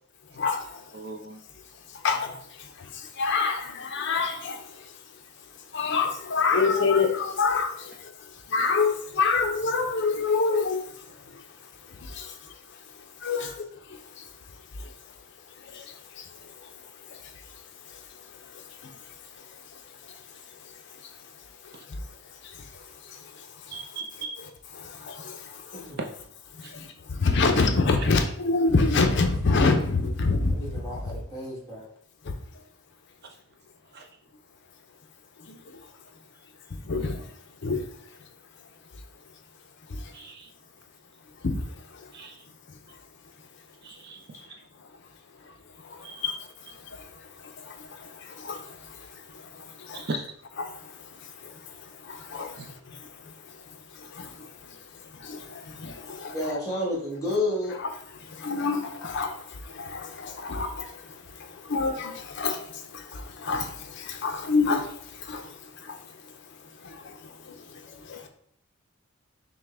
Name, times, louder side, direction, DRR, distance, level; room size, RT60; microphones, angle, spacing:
voice 1, 0.3-0.9 1.9-4.9 5.7-11.4 11.9-12.5 13.2-14.2 14.8-14.9 15.6-16.3 16.6-16.7 17.1-17.3 17.8-18.0 18.5-19.0 19.4-20.2 21.0-21.1 21.9-22.0 22.4-23.8 24.4-24.5 24.7-25.8 26.6-30.6 32.2-32.3 35.4-35.9 36.8-37.3 37.6-37.8 39.9-40.1 41.4-42.1 45.8-46.4 46.7-50.1 50.6-53.3 53.9-56.6 57.8-66.0 66.8-68.3, left 4 dB, 55° left, 0.5 m, -29 dB
voice 2, 0.9-1.4 21.7-21.8 23.7-24.4 26.0-26.1 26.6-26.7 33.9-34.1 40.1-40.5 42.1-42.4 43.8-44.2 44.5-44.6 46.0-46.2 49.9-50.3 52.6-52.7, right 3 dB, 45° right, 0.5 m, -37 dB
voice 3, 30.5-31.9 44.3-44.4 56.3-57.7, left 1 dB, 15° left, 1.3 m, -31 dB
5.6 x 2.1 x 3.3 m
head